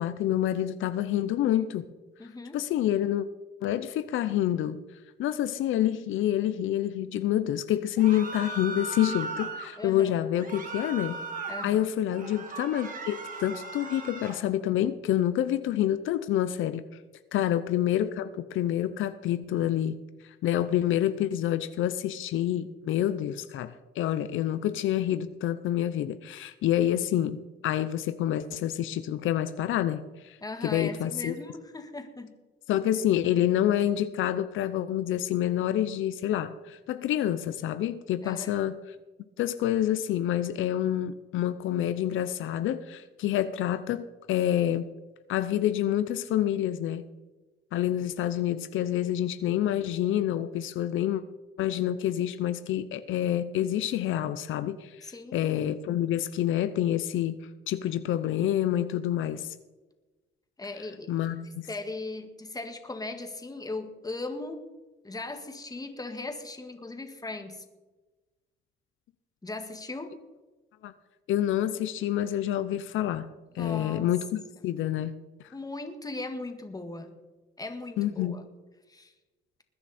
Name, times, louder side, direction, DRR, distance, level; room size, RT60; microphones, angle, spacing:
voice 1, 0.0-1.8 2.5-3.3 3.6-4.8 5.2-11.2 11.6-16.8 17.3-20.0 20.4-31.3 32.7-38.8 39.4-44.9 45.3-47.0 47.7-51.2 51.6-57.4 57.7-59.5 61.1-61.7 70.8-70.9 71.3-73.3 73.6-75.2 78.0-78.4, left 11 dB, 80° left, 12 dB, 0.7 m, -27 dB
voice 2, 2.2-2.6 9.8-10.2 11.5-11.9 17.4-17.6 30.4-32.3 38.2-38.5 55.0-55.5 60.6-61.3 61.7-64.7 65.0-67.6 69.4-70.2 73.6-74.1 75.5-77.2 77.6-78.4 78.9-79.1, left 2 dB, 20° left, 7 dB, 1.8 m, -38 dB
sound 1, 8.0-9.7 10.4-11.7 12.1-14.4, right 3 dB, 45° right, 2.7 m, -37 dB
20.5 x 9.8 x 4.3 m, 1.2 s
cardioid pair, 90°, 20 cm